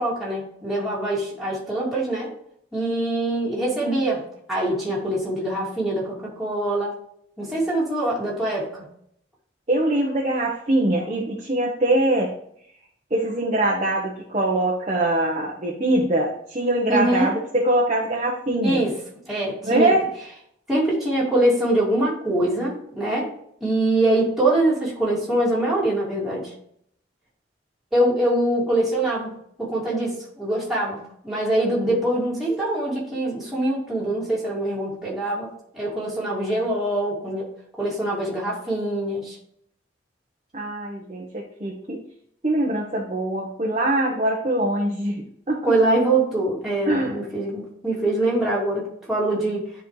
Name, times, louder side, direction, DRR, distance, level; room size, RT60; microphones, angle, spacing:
voice 1, 0.0-2.3 2.7-4.2 4.5-7.0 7.4-8.8 16.9-17.3 18.6-18.9 19.3-19.9 20.7-23.3 23.6-26.5 27.9-29.3 29.6-35.5 35.7-37.5 37.8-39.3 45.6-49.6, right 1 dB, ahead, -7 dB, 2.5 m, -23 dB
voice 2, 9.7-12.3 13.1-18.9 19.6-20.0 40.5-42.0 42.4-45.7 46.9-47.1, right 1 dB, 35° right, -3 dB, 1.2 m, -23 dB
10.5 x 4.5 x 3.3 m, 0.68 s
head